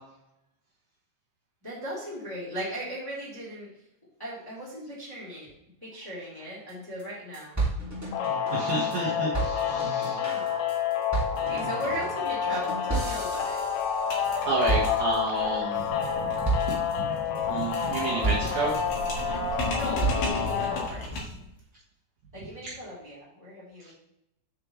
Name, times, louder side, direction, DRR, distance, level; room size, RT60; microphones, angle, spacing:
voice 1, 1.6-3.7 4.2-5.5 5.8-7.6 10.1-10.5 11.4-13.6 19.5-21.3 22.3-23.9, equal, 5° left, -8 dB, 2.4 m, -37 dB
sound 1, 6.7-6.8 7.0-7.1 7.3-9.0 9.3-14.4 14.7-15.4 15.8-16.1 16.4-16.9 17.3-17.8 18.2-19.2 19.6-20.5, right 3 dB, 20° right, 0.4 m, -32 dB
sound 2, 8.1-20.9, left 7 dB, 80° left, 3.1 m, -29 dB
voice 2, 8.5-10.2 14.5-16.3 16.7-18.8, right 4 dB, 75° right, -4 dB, 1.8 m, -31 dB
sound 3, 12.6-12.7 13.0-13.1 13.3-21.5, left 1 dB, 60° left, 2.6 m, -36 dB
8.5 x 7.5 x 3.1 m, 0.80 s
omnidirectional pair, 5.3 m